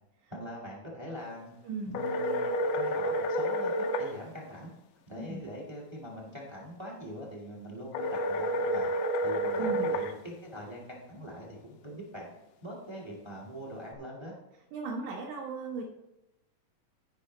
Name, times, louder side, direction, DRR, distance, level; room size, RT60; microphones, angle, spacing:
voice 1, 0.3-1.5 1.9-2.5 2.7-3.7 4.0-4.7 5.1-8.9 9.2-12.3 12.6-14.3, equal, 25° right, -3 dB, 0.6 m, -42 dB
voice 2, 1.6-2.0 2.3-2.5 5.3-5.4 9.6-9.9 14.7-15.9, right 4 dB, 70° right, -4 dB, 2.3 m, -37 dB
sound 1, 1.9-4.1 7.9-10.1, equal, 90° left, 2.3 m, -29 dB
15.0 x 5.5 x 3.2 m, 0.92 s
omnidirectional pair, 3.6 m